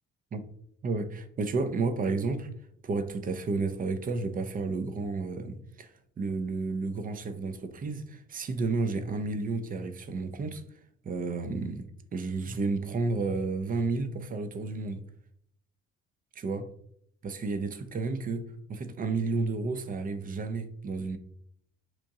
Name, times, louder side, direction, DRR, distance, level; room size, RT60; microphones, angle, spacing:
voice 1, 0.8-2.5 2.8-10.6 11.0-15.0 16.4-16.6 17.2-21.2, right 3 dB, 25° right, 0.5 m, -31 dB
3.0 x 2.5 x 3.5 m
hypercardioid pair, 50°, 34 cm